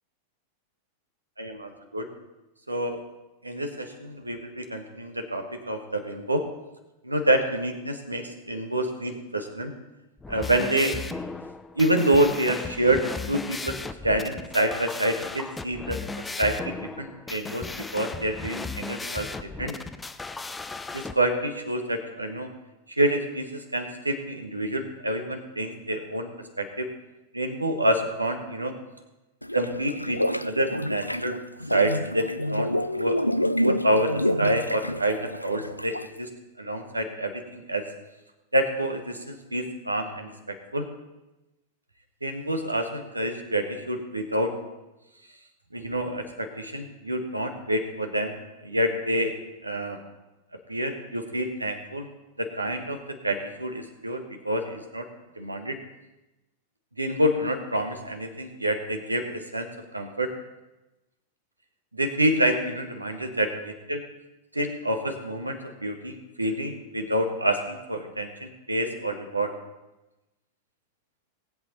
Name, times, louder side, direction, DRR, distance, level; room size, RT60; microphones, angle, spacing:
voice 1, 1.4-2.1 2.7-3.0 3.4-6.5 7.0-9.7 10.3-11.0 11.7-19.7 20.9-22.5 22.9-26.3 26.6-26.9 27.3-28.8 29.5-31.4 31.7-33.2 33.6-36.3 36.6-37.9 38.5-40.9 42.2-44.5 45.7-48.4 48.6-49.3 49.6-50.0 50.7-52.1 52.4-55.1 55.3-55.8 57.0-60.3 61.9-64.0 64.5-69.5, right 1 dB, 85° right, 6 dB, 1.3 m, -27 dB
sound 1, 10.2-21.1, left 3 dB, 10° left, 0.6 m, -36 dB
sound 2, 29.4-36.2, equal, 90° left, 0.3 m, -28 dB
18.5 x 8.3 x 4.0 m, 1.0 s
figure-of-eight pair, 90°, 0 cm